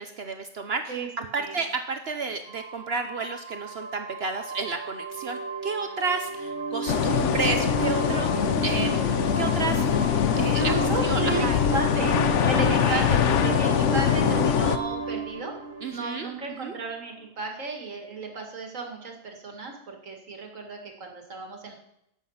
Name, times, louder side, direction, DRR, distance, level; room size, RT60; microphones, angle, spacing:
voice 1, 0.2-8.3 8.6-9.1 9.4-10.7 11.0-11.6 12.4-13.1 15.8-16.8, right 4 dB, 55° right, 7 dB, 0.9 m, -31 dB
voice 2, 0.9-1.6 10.5-12.2 12.4-15.6 15.9-21.8, right 3 dB, 85° right, 3 dB, 2.3 m, -34 dB
sound 1, 2.4-16.9, right 4 dB, 10° left, 3.5 m, -33 dB
sound 2, 6.9-14.8, left 9 dB, 70° left, 1.0 m, -23 dB
11.5 x 8.3 x 5.6 m, 0.80 s
omnidirectional pair, 1.3 m